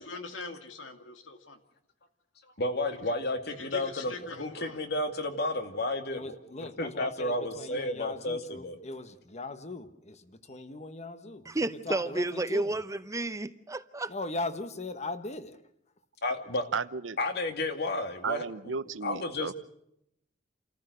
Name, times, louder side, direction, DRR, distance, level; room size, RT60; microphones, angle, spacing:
voice 1, 0.0-1.6 3.5-4.8, left 3 dB, 80° left, 2.3 m, -43 dB
voice 2, 2.6-6.3 6.8-8.8 16.2-16.7 17.2-18.4 19.0-19.5, left 2 dB, 60° left, 2.3 m, -32 dB
voice 3, 6.1-11.5 11.8-12.8 14.0-15.6, left 2 dB, 35° left, 1.4 m, -39 dB
voice 4, 11.5-14.1, right 2 dB, 15° right, 0.7 m, -31 dB
voice 5, 16.7-17.2 18.2-19.5, right 5 dB, 75° right, 0.8 m, -34 dB
29.5 x 14.5 x 6.6 m
head